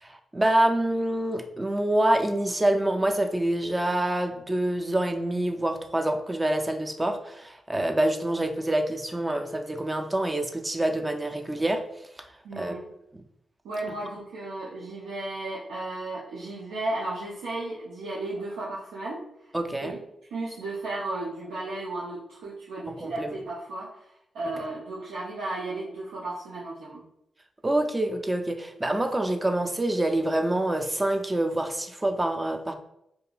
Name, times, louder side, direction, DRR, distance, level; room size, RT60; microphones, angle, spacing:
voice 1, 0.0-11.8 12.5-12.8 13.1-13.2 19.5-20.0 22.9-23.3 27.6-32.7, right 1 dB, 25° right, 5 dB, 0.4 m, -26 dB
voice 2, 12.4-12.9 13.6-19.2 19.8-20.0 20.3-27.0, right 2 dB, 85° right, -7 dB, 0.5 m, -34 dB
2.7 x 2.5 x 2.3 m, 0.78 s
supercardioid pair, 40°, 0 cm